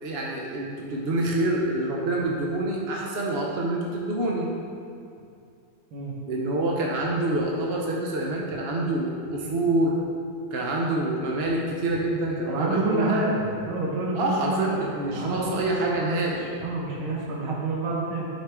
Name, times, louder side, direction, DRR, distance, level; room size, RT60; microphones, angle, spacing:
voice 1, 0.0-4.5 6.3-9.9 10.5-13.2 14.1-16.5, right 2 dB, 55° right, -2 dB, 0.7 m, -27 dB
voice 2, 12.5-14.8 15.1-18.3, right 2 dB, 85° right, -3 dB, 2.2 m, -28 dB
9.6 x 6.4 x 3.6 m, 2.5 s
omnidirectional pair, 2.2 m